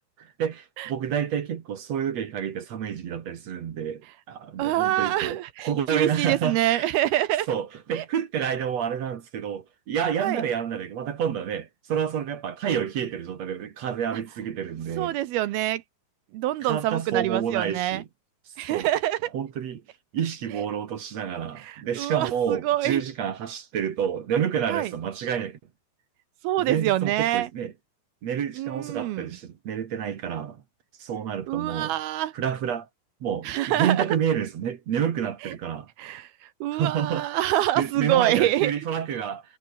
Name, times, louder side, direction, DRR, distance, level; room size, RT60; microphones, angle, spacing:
voice 1, 0.2-6.9 7.5-15.2 16.6-18.1 18.7-18.9 19.3-19.8 20.1-25.6 26.7-27.7 28.2-30.6 31.0-31.9 32.3-32.9 33.2-35.9 36.7-39.4, right 8 dB, 55° right, 2.1 m, -29 dB
voice 2, 4.6-7.5 7.9-8.0 10.2-10.4 15.0-15.8 16.3-18.0 18.6-19.3 21.6-23.0 24.7-24.9 26.4-27.5 28.6-29.3 31.5-32.3 33.4-34.1 35.4-35.5 36.0-38.7, right 14 dB, 75° right, 2.6 m, -26 dB
omnidirectional pair, 5.0 m